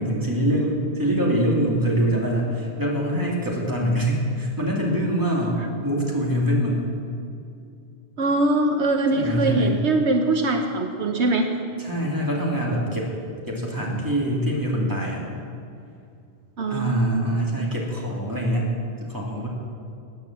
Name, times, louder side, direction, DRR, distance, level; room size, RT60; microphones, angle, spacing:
voice 1, 0.0-6.9 9.1-9.8 11.8-13.1 13.5-15.2 16.7-18.7 19.0-19.5, equal, 15° right, -3 dB, 2.8 m, -24 dB
voice 2, 8.2-11.5 16.6-17.3, right 2 dB, 75° right, 4 dB, 1.3 m, -22 dB
17.5 x 9.6 x 7.4 m, 2.5 s
omnidirectional pair, 1.2 m